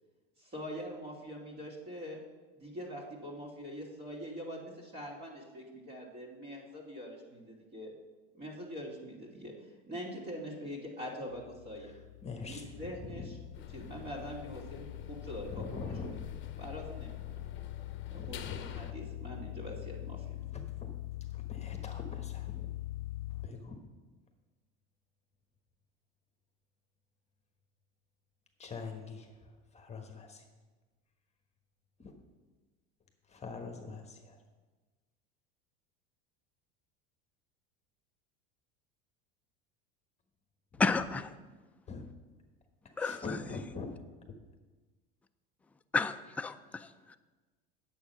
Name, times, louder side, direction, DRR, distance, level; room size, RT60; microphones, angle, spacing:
voice 1, 0.4-2.2 2.5-7.9 8.3-9.5 9.9-11.9 12.4-13.4 13.7-15.9 16.6-17.3 18.1-20.4, equal, 35° right, -4 dB, 2.8 m, -43 dB
sound 1, 11.3-23.5, left 16 dB, 80° left, 0.5 m, -43 dB
voice 2, 11.8-13.4 15.5-16.2 18.1-18.7 20.8-20.9 21.3-22.7 23.3-23.8 28.6-30.4 32.0-32.1 33.3-34.4 40.7-41.1 41.9-42.0 43.0-43.9, left 4 dB, 20° left, 4 dB, 1.3 m, -44 dB
sound 2, 13.5-18.9, left 8 dB, 40° left, 0.8 m, -48 dB
voice 3, 40.8-41.3 43.0-43.2 45.9-47.2, left 4 dB, 5° left, 8 dB, 0.3 m, -31 dB
8.7 x 7.6 x 5.8 m, 1.3 s
supercardioid pair, 110°, 30 cm